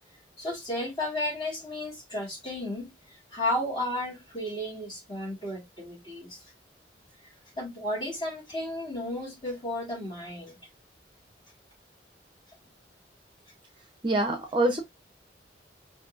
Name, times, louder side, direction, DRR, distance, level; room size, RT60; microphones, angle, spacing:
voice 1, 0.4-6.4 7.6-10.6, left 1 dB, 25° left, 1.9 m, -33 dB
voice 2, 14.0-14.8, right 1 dB, 25° right, 0.6 m, -25 dB
5.1 x 2.7 x 2.5 m
head